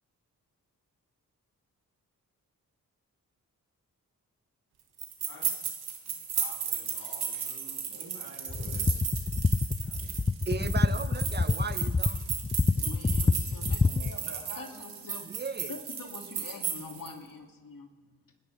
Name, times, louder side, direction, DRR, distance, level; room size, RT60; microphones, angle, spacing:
sound 1, 5.0-17.1, right 7 dB, 80° right, 1.9 m, -35 dB
sound 2, 5.3-8.9 9.7-10.4, left 2 dB, 75° left, 4.4 m, -53 dB
voice 1, 7.9-9.1 13.8-15.0 15.4-15.8 16.5-16.6 16.9-17.0, right 3 dB, 50° right, -1 dB, 3.4 m, -48 dB
sound 3, 8.5-14.2, left 4 dB, 15° left, 0.3 m, -27 dB
voice 2, 10.5-12.3 15.2-15.7, right 4 dB, 25° right, 11 dB, 1.1 m, -36 dB
voice 3, 12.7-13.9 14.5-15.3 15.6-18.3, left 4 dB, 60° left, 2 dB, 2.5 m, -45 dB
28.0 x 10.5 x 3.4 m, 1.3 s
supercardioid pair, 40°, 38 cm